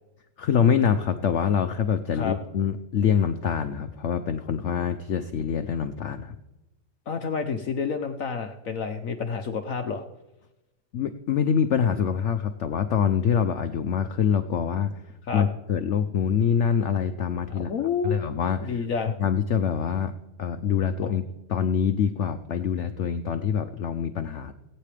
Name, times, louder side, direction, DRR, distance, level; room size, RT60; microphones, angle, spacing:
voice 1, 0.4-6.4 10.9-14.9 15.3-17.7 18.0-18.8 19.2-20.1 20.4-21.2 21.5-24.5, left 7 dB, 90° left, 9 dB, 0.6 m, -25 dB
voice 2, 7.1-10.0 15.3-15.5 17.5-18.2 18.6-19.2 21.0-21.1, left 5 dB, 60° left, 6 dB, 1.0 m, -29 dB
18.0 x 9.2 x 3.3 m, 0.99 s
omnidirectional pair, 1.9 m